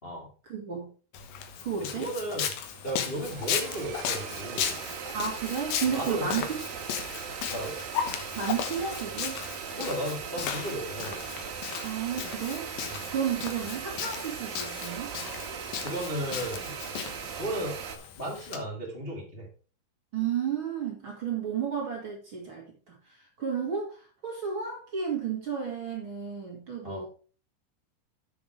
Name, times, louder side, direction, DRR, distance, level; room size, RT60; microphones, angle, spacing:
voice 1, 0.5-0.9 1.6-2.1 5.1-6.6 8.4-9.4 11.8-12.7 13.1-15.1 20.1-27.1, right 7 dB, 40° right, -1 dB, 2.3 m, -32 dB
Walk footsteps, 1.1-18.6, left 8 dB, 70° left, 2.7 m, -36 dB
sound 1, 1.2-1.3 1.6-2.1 2.4-18.0, right 8 dB, 70° right, 2.9 m, -39 dB
voice 2, 1.8-2.5 2.8-4.8 5.8-6.5 7.5-7.8 9.7-11.3 12.9-13.1 15.8-16.8 17.3-19.5 26.8-27.0, right 1 dB, 25° left, -2 dB, 1.3 m, -35 dB
7.7 x 7.2 x 4.7 m, 0.39 s
omnidirectional pair, 4.5 m